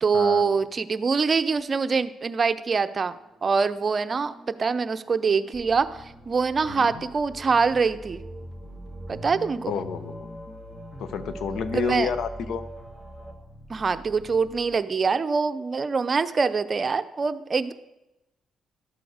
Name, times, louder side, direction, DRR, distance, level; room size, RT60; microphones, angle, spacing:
voice 1, 0.0-3.2 3.4-8.2 9.1-9.7 11.7-12.1 13.7-17.7, right 5 dB, 35° right, 11 dB, 0.7 m, -24 dB
sound 1, 3.0-13.3, right 2 dB, 5° right, 3.2 m, -48 dB
sound 2, 5.5-14.6, equal, 15° left, 2.0 m, -43 dB
voice 2, 9.7-10.3 11.0-12.6, left 6 dB, 70° left, 12 dB, 0.9 m, -30 dB
13.0 x 8.3 x 6.5 m, 0.94 s
cardioid pair, 90°, 0 cm